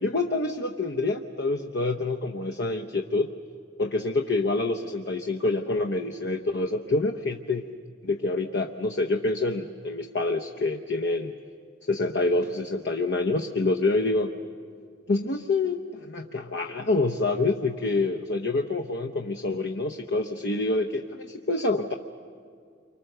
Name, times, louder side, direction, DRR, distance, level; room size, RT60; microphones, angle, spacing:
voice 1, 0.0-3.3 3.8-7.6 8.0-11.4 11.9-14.3 15.1-21.9, left 2 dB, 60° left, 5 dB, 0.8 m, -27 dB
28.5 x 24.5 x 6.7 m, 2.1 s
head